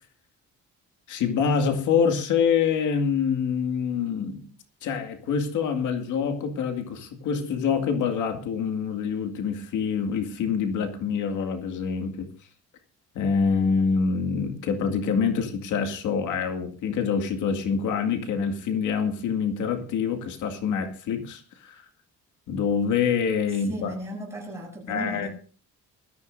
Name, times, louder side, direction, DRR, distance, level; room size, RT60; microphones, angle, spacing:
voice 1, 1.1-4.5 4.8-12.3 13.2-21.9 22.5-23.9 24.9-25.3, left 6 dB, 85° left, 5 dB, 2.2 m, -26 dB
voice 2, 23.7-25.3, equal, 10° right, -1 dB, 7.5 m, -35 dB
20.0 x 14.0 x 2.6 m, 0.39 s
cardioid pair, 155°, 30 cm